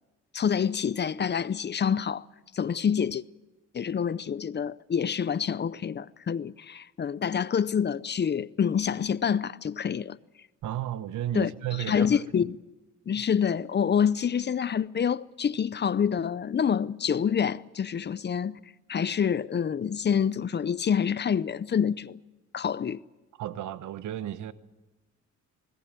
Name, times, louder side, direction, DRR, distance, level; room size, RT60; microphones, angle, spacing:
voice 1, 0.3-2.2 2.5-3.2 3.7-10.2 11.3-11.5 11.9-12.6 13.1-18.6 18.9-22.2 22.5-23.0, left 7 dB, 35° left, 0.6 m, -27 dB
voice 2, 10.6-12.2 23.4-24.5, right 12 dB, 75° right, 1.1 m, -33 dB
20.5 x 18.0 x 9.1 m
cardioid pair, 90°, 30 cm